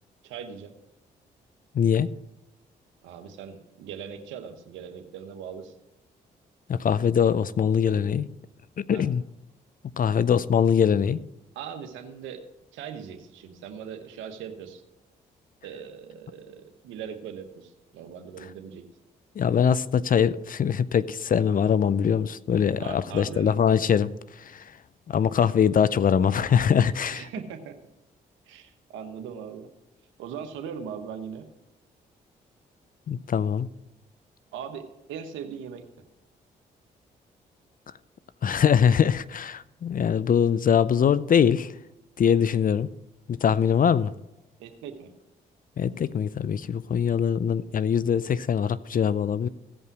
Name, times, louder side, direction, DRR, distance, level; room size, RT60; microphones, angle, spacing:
voice 1, 0.2-0.7 3.0-5.7 8.9-9.1 11.5-12.4 12.7-14.8 15.6-18.8 22.8-23.5 27.1-27.8 28.5-29.7 30.2-31.5 34.5-35.9 44.6-45.1, right 7 dB, 85° right, 1.1 m, -39 dB
voice 2, 1.7-2.1 6.7-8.3 8.8-9.2 10.0-11.2 19.4-24.7 25.1-27.3 33.1-33.7 38.4-41.7 42.2-42.9 43.3-44.1 45.8-49.5, left 7 dB, 45° left, 0.5 m, -22 dB
16.0 x 5.5 x 6.0 m
hypercardioid pair, 45°, 19 cm